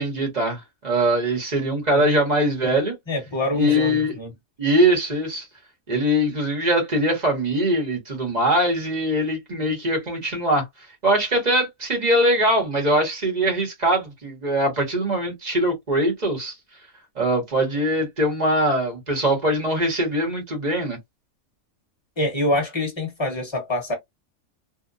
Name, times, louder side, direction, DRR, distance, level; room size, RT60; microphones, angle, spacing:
voice 1, 0.0-2.9 3.5-4.1 4.6-5.5 5.9-10.7 11.0-16.5 17.2-21.0, right 1 dB, 35° right, 1.0 m, -22 dB
voice 2, 3.1-4.3 22.2-24.0, left 1 dB, 20° left, 1.1 m, -25 dB
2.8 x 2.1 x 2.5 m
omnidirectional pair, 1.4 m